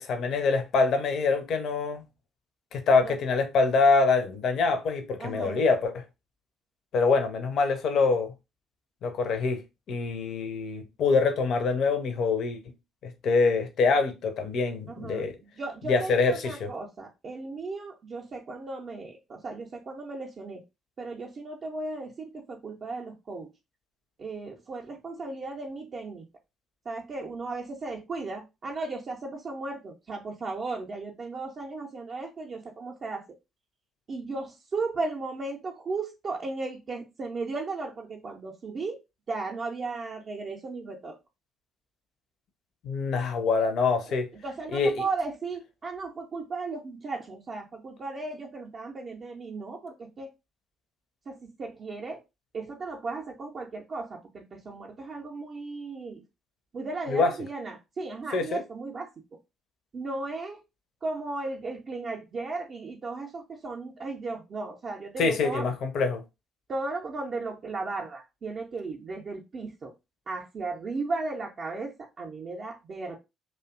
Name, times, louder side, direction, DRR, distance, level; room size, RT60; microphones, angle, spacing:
voice 1, 0.0-2.0 2.7-6.0 6.9-8.3 9.0-9.6 9.9-12.6 13.0-15.4 15.9-16.7 42.8-44.3 44.7-44.9 57.1-57.3 58.3-58.6 65.2-66.2, left 4 dB, 55° left, 0.4 m, -25 dB
voice 2, 5.2-5.6 14.9-20.6 21.0-23.5 24.2-26.3 26.9-33.2 34.1-39.0 39.3-41.2 44.1-44.2 44.4-50.3 51.3-52.2 52.5-56.2 56.7-59.1 59.9-60.6 61.0-65.7 66.7-69.9 70.3-73.2, right 3 dB, 40° right, 0.4 m, -35 dB
2.5 x 2.1 x 2.4 m
figure-of-eight pair, 45°, 0 cm